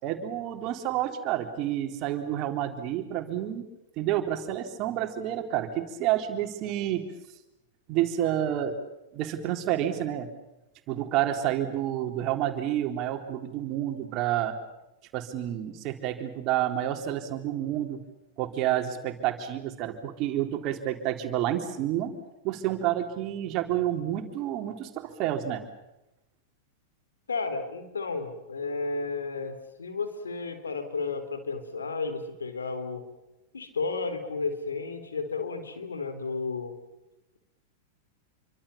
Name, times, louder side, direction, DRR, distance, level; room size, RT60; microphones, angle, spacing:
voice 1, 0.0-3.7 4.0-7.0 7.9-8.8 9.1-10.3 10.9-14.5 15.1-18.0 18.4-22.1 22.4-25.6, right 12 dB, 45° right, 5 dB, 3.9 m, -29 dB
voice 2, 27.3-33.1 33.5-36.7, left 4 dB, 85° left, 8 dB, 4.1 m, -33 dB
28.0 x 24.5 x 7.3 m, 0.94 s
hypercardioid pair, 100°, 0 cm